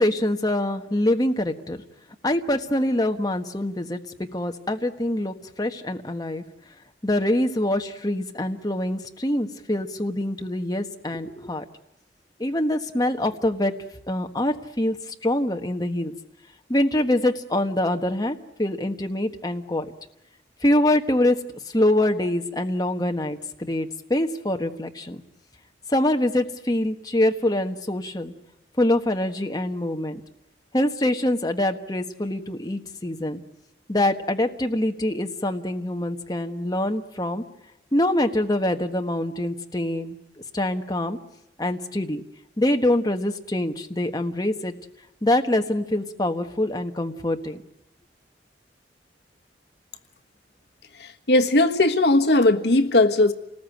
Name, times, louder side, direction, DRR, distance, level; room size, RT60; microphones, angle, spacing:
voice 1, 0.0-1.8 2.2-6.4 7.0-11.6 12.4-13.7 14.1-16.1 16.7-19.9 20.6-21.4 21.7-25.2 25.9-28.3 28.8-30.2 30.7-33.4 33.9-37.4 37.9-40.1 40.5-41.2 41.6-42.2 42.6-44.7 45.2-47.6, left 1 dB, 20° left, 4 dB, 1.4 m, -24 dB
voice 2, 50.9-53.3, left 2 dB, 70° left, 7 dB, 1.4 m, -18 dB
28.5 x 20.0 x 9.2 m, 0.87 s
head